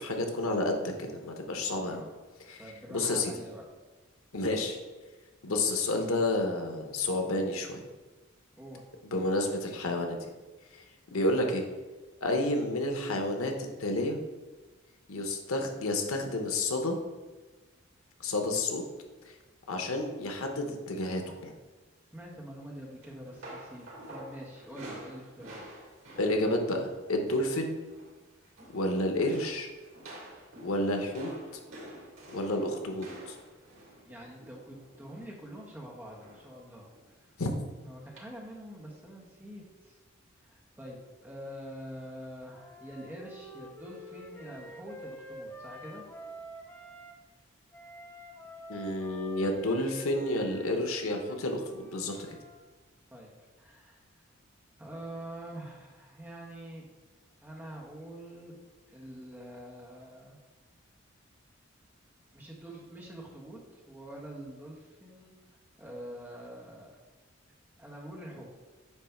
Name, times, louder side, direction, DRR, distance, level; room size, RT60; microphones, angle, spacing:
voice 1, 0.0-2.0 2.5-2.6 2.9-3.3 4.3-4.8 5.4-7.8 9.0-10.2 11.1-11.6 12.2-13.5 13.8-14.2 15.1-17.0 18.2-18.8 19.3-19.4 19.7-21.5 26.2-27.8 28.7-29.7 30.6-31.3 32.3-33.4 37.4-37.5 48.7-52.4, left 1 dB, 90° left, 3 dB, 1.0 m, -30 dB
voice 2, 1.6-2.2 2.6-3.6 8.6-8.8 11.1-11.3 22.1-25.6 34.0-37.2 37.8-40.0 40.4-46.0 53.1-53.3 53.6-54.0 54.8-56.8 57.4-58.6 58.9-60.4 62.3-66.9 67.8-68.6, right 1 dB, 10° right, -3 dB, 1.3 m, -45 dB
sound 1, 23.0-27.6 27.8-28.2 28.4-28.9 29.3-35.3 36.2-36.6 36.9-37.1 38.2-38.3, right 1 dB, 70° right, 2.5 m, -48 dB
Wind instrument woodwind instrument, 42.5-47.2 47.7-52.6, equal, 10° left, 0.6 m, -47 dB
9.3 x 3.1 x 5.9 m, 1.2 s
head